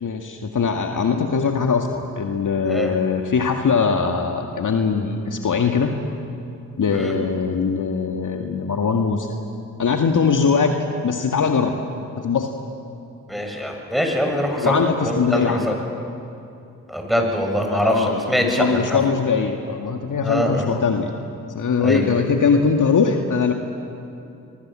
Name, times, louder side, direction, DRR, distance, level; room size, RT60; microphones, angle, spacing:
voice 1, 0.0-5.9 6.8-9.3 9.8-10.7 11.0-11.8 12.2-12.5 14.6-15.8 17.8-21.2 21.5-23.5, left 5 dB, 45° left, 4 dB, 2.0 m, -21 dB
voice 2, 13.3-15.8 16.9-19.0 20.2-20.7 21.8-22.2, equal, ahead, 2 dB, 7.0 m, -23 dB
26.0 x 23.0 x 7.6 m, 2.7 s
hypercardioid pair, 45°, 42 cm